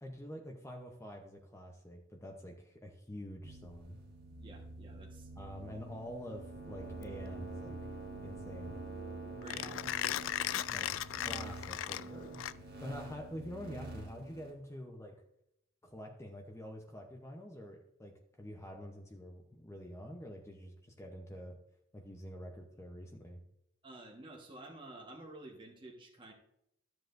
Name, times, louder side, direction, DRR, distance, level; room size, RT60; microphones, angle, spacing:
voice 1, 0.0-4.0 5.4-7.8 8.2-8.8 10.7-10.9 11.2-12.4 12.8-15.2 15.8-21.6 21.9-23.4, equal, 15° left, 2 dB, 0.8 m, -47 dB
sound 1, 3.4-14.5, right 2 dB, 55° right, 1.8 m, -47 dB
voice 2, 4.4-5.3 9.3-10.0 23.8-26.3, right 2 dB, 25° right, 0 dB, 1.3 m, -51 dB
Mechanisms, 6.9-13.0, left 12 dB, 80° left, 0.3 m, -38 dB
13.5 x 7.7 x 2.6 m, 0.80 s
head